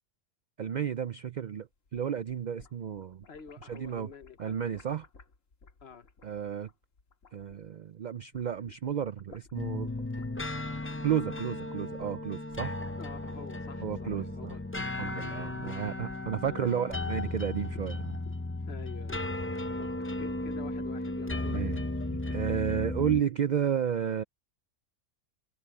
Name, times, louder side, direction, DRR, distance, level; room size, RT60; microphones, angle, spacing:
voice 1, 0.6-1.7 1.9-3.2 3.6-4.1 4.4-5.1 6.2-6.7 7.3-9.9 11.0-12.8 13.8-14.6 15.0-18.2 21.4-21.8 22.3-24.2, right 8 dB, 65° right, 0.4 m, -32 dB
sound 1, 1.7-7.9 8.2-14.3 14.6-19.4, left 5 dB, 80° left, 2.3 m, -56 dB
voice 2, 3.3-4.5 5.8-6.1 13.0-14.9 16.4-16.7 18.7-19.3 19.8-19.9 20.2-21.7, left 6 dB, 55° left, 1.3 m, -48 dB
sound 2, 9.5-23.2, left 2 dB, 15° left, 0.5 m, -35 dB
omnidirectional pair, 1.3 m